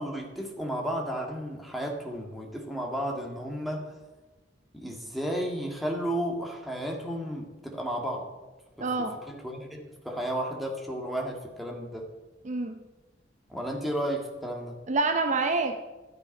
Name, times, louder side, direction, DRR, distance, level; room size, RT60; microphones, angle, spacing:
voice 1, 0.0-3.9 4.7-8.3 8.8-8.9 9.3-12.0 13.5-14.8, equal, ahead, 0 dB, 1.8 m, -33 dB
voice 2, 8.8-9.2 12.4-12.8 14.9-15.9, right 3 dB, 40° right, 6 dB, 0.7 m, -27 dB
12.0 x 9.6 x 5.3 m, 1.2 s
head